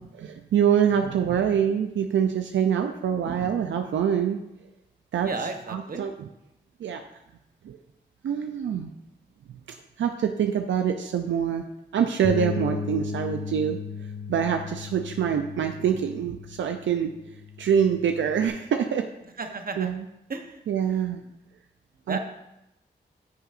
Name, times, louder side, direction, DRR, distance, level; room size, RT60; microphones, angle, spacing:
voice 1, 0.0-4.4 5.1-5.3 5.7-6.3 6.8-7.0 7.6-7.8 8.2-8.9 10.0-11.6 11.9-13.8 14.3-17.1 17.6-19.1 19.8-20.0 20.7-21.2 22.1-22.2, right 8 dB, 80° right, 5 dB, 0.5 m, -25 dB
voice 2, 5.2-6.1 19.4-19.9 20.3-20.6 22.1-22.2, right 3 dB, 50° right, 6 dB, 1.0 m, -33 dB
Bass guitar, 12.2-18.5, left 5 dB, 40° left, 1.3 m, -35 dB
9.8 x 6.3 x 2.5 m, 0.89 s
cardioid pair, 45°, 19 cm